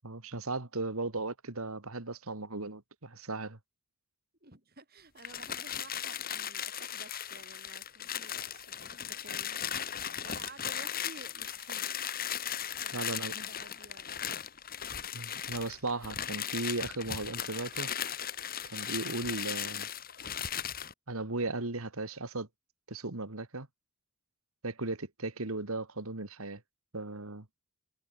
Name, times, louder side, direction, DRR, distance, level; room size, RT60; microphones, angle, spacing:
voice 1, 0.0-3.6 12.9-13.5 15.1-17.9 18.7-19.9 21.1-22.5 22.9-23.7 24.6-26.6 26.9-27.5, right 2 dB, 75° right, 2.2 m, -36 dB
voice 2, 4.4-10.0 10.2-11.9 12.8-14.2, right 3 dB, 45° right, 6.9 m, -53 dB
sound 1, 5.2-20.9, left 9 dB, 40° left, 3.0 m, -37 dB
head